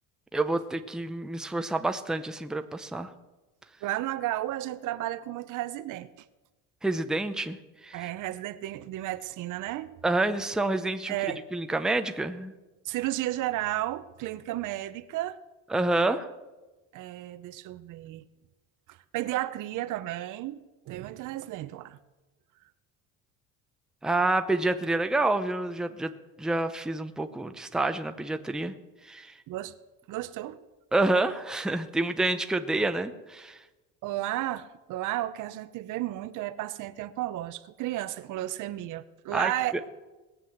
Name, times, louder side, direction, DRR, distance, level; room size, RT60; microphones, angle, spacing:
voice 1, 0.3-3.1 6.8-7.6 7.8-8.1 10.0-12.5 15.7-16.3 24.0-26.1 26.4-28.7 29.0-29.3 30.9-33.6 39.3-39.5, right 2 dB, ahead, 0.6 m, -28 dB
voice 2, 3.8-6.1 7.9-10.0 11.1-11.4 12.9-15.4 16.9-18.2 18.9-22.0 29.5-29.7 30.1-30.6 34.0-39.7, right 15 dB, 65° right, 0.8 m, -33 dB
19.0 x 7.7 x 7.7 m
cardioid pair, 145°, 33 cm